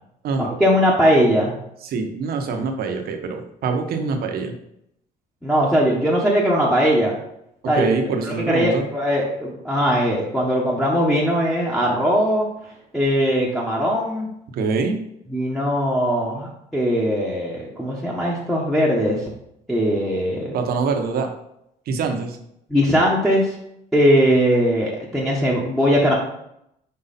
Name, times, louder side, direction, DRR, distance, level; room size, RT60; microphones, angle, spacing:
voice 1, 0.4-1.5 5.4-7.1 7.7-7.9 8.2-12.5 12.9-14.3 15.3-19.2 19.7-20.5 22.7-23.5 23.9-26.1, equal, ahead, -6 dB, 1.2 m, -20 dB
voice 2, 1.8-4.5 7.7-8.8 14.5-15.0 20.5-21.3 21.9-22.4, right 4 dB, 65° right, 5 dB, 1.1 m, -24 dB
5.6 x 4.7 x 4.2 m, 0.78 s
cardioid pair, 110°, 17 cm